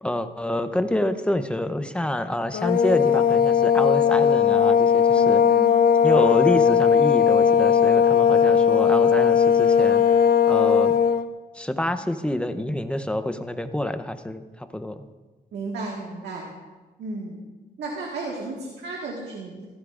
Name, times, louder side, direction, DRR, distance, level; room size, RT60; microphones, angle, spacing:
voice 1, 0.0-5.4 6.0-10.2 10.5-11.0 11.5-15.0, left 1 dB, 5° left, 9 dB, 0.8 m, -27 dB
sound 1, 2.5-11.3, left 7 dB, 60° left, 0.6 m, -18 dB
voice 2, 5.1-5.7 15.5-16.5 17.0-17.4 17.8-19.7, right 3 dB, 80° right, -1 dB, 1.8 m, -33 dB
16.0 x 14.5 x 2.5 m, 1.3 s
cardioid pair, 95°, 17 cm